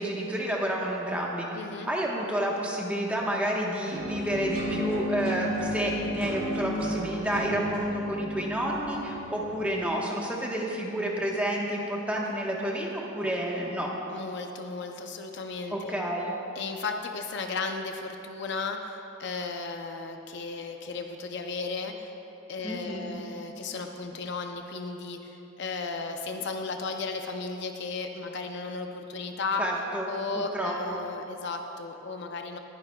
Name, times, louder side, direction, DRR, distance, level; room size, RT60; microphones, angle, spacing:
voice 1, 0.0-1.5 1.8-13.9 15.7-16.3 22.6-23.2 29.6-30.1 30.3-31.0, right 1 dB, 5° right, -3 dB, 1.1 m, -30 dB
voice 2, 1.5-1.9 14.1-15.9 16.6-22.1 22.5-29.6 30.1-32.6, left 4 dB, 55° left, 4 dB, 0.6 m, -35 dB
sound 1, 3.9-9.9, equal, 90° right, 2.2 m, -33 dB
21.5 x 9.8 x 2.3 m, 3.0 s
head